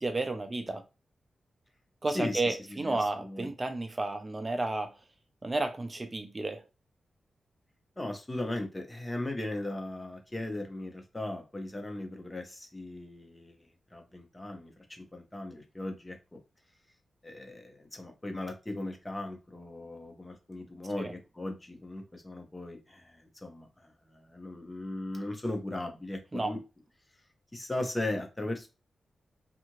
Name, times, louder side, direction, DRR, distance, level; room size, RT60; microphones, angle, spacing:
voice 1, 0.0-0.8 2.0-5.0 5.4-6.6 21.0-21.1 26.3-26.5, right 2 dB, 25° right, 0.4 m, -32 dB
voice 2, 2.1-3.5 8.0-16.4 17.2-26.6 27.5-28.7, left 1 dB, 15° left, 0.6 m, -38 dB
2.7 x 2.4 x 2.9 m
wide cardioid pair, 130°, 0 cm